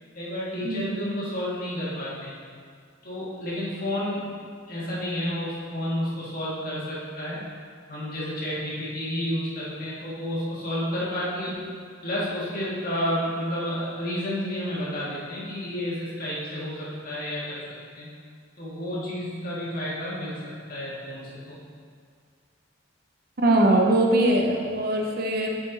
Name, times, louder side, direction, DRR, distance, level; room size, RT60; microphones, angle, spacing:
voice 1, 0.2-2.3 3.0-4.3 4.7-7.4 7.9-11.6 12.0-17.6 17.9-18.1 18.6-21.6, equal, 45° left, -7 dB, 2.0 m, -31 dB
voice 2, 23.4-25.6, right 1 dB, 50° right, 1 dB, 0.8 m, -21 dB
7.4 x 5.8 x 4.1 m, 2.1 s
head